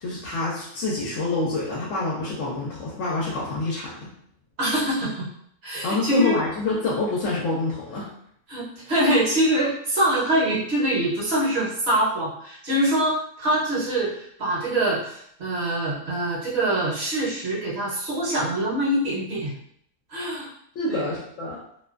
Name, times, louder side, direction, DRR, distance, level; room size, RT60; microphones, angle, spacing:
voice 1, 0.0-4.1 5.8-8.1 20.8-21.6, left 3 dB, 70° left, -4 dB, 0.9 m, -27 dB
voice 2, 4.6-5.3 5.6-6.4 8.5-19.5 20.1-20.5 20.9-21.1, right 1 dB, 55° right, -6 dB, 0.9 m, -24 dB
2.5 x 2.2 x 2.4 m, 0.68 s
omnidirectional pair, 1.4 m